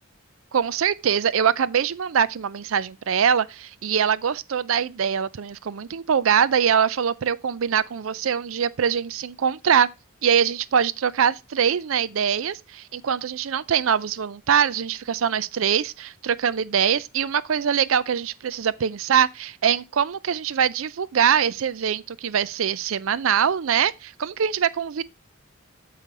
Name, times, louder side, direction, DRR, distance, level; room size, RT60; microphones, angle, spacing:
voice 1, 0.5-9.9 10.2-25.0, right 8 dB, 70° right, 0.4 m, -23 dB
6.8 x 5.6 x 4.6 m
head